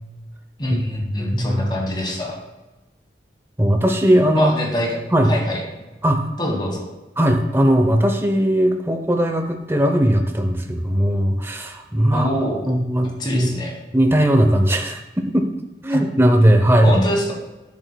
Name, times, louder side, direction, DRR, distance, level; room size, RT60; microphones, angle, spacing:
voice 1, 0.6-2.4 4.3-5.0 5.2-5.6 6.4-6.9 12.1-12.7 13.2-13.8 15.9-16.0 16.8-17.3, left 1 dB, 25° left, 0 dB, 1.5 m, -24 dB
voice 2, 1.2-1.6 3.6-4.5 5.1-5.3 6.0-6.3 7.2-12.3 12.7-13.5 13.9-15.5 15.8-17.0, equal, 15° right, 4 dB, 0.7 m, -18 dB
11.0 x 6.4 x 2.3 m, 1.1 s
head